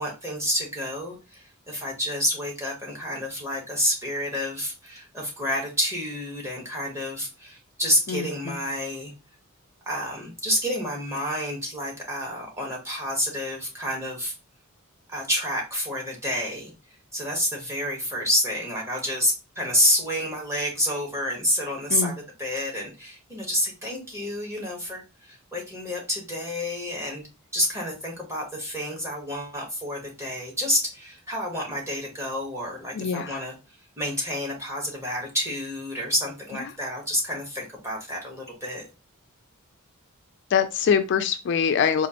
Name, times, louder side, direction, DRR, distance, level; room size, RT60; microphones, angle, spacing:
voice 1, 0.0-9.1 9.9-14.3 15.1-16.7 17.1-22.1 22.4-27.2 27.5-33.5 34.0-38.8, equal, 15° right, -2 dB, 1.2 m, -29 dB
voice 2, 8.1-8.6 21.9-22.2 32.9-33.4 36.6-36.7 40.5-42.1, left 7 dB, 55° left, 9 dB, 0.3 m, -24 dB
4.1 x 2.4 x 2.9 m, 0.29 s
head